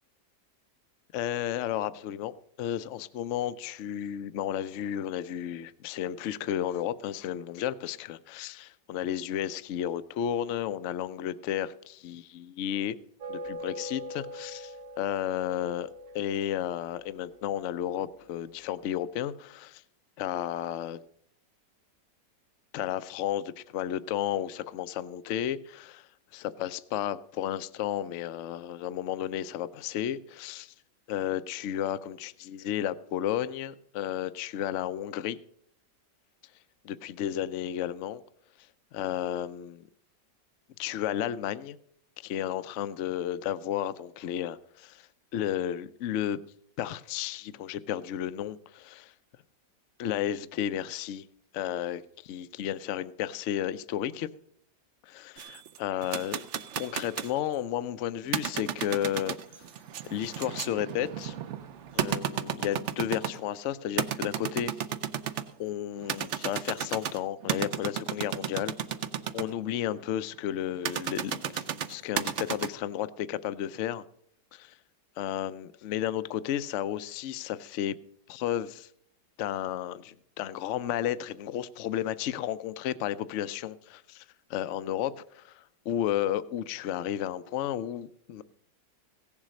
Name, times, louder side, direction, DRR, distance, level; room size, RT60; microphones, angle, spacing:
voice 1, 1.1-13.0 13.3-15.9 16.1-19.8 20.2-21.0 22.7-30.7 31.1-35.4 36.8-38.2 38.9-39.9 40.8-41.8 42.2-46.4 46.8-48.6 50.0-51.3 51.5-54.3 55.0-56.4 56.8-59.4 60.1-61.3 61.9-64.7 65.6-68.7 69.3-74.0 74.5-74.8 75.2-78.0 78.3-78.9 79.4-84.2 84.5-88.4, left 11 dB, 70° left, 0.7 m, -33 dB
sound 1, 13.2-18.7, equal, 75° right, 1.9 m, -43 dB
sound 2, 55.4-57.4 58.3-63.5 64.0-65.5 66.0-69.4 70.9-72.7, right 9 dB, 60° right, 0.8 m, -33 dB
16.5 x 7.3 x 6.3 m
omnidirectional pair, 1.9 m